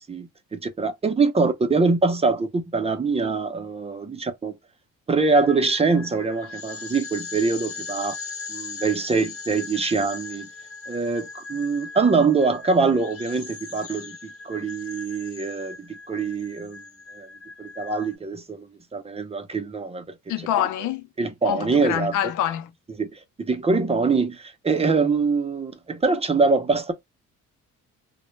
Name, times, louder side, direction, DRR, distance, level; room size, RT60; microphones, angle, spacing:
voice 1, 0.1-4.5 5.1-8.1 8.5-10.5 10.9-16.8 17.1-17.3 17.6-20.0 21.2-22.1 23.0-26.9, right 4 dB, 20° right, 0.5 m, -24 dB
sound 1, 5.2-18.2, left 4 dB, 50° left, 0.8 m, -39 dB
voice 2, 20.3-21.1 21.4-22.7, left 11 dB, 85° left, 0.5 m, -26 dB
2.1 x 2.1 x 3.0 m
cardioid pair, 90°, 30 cm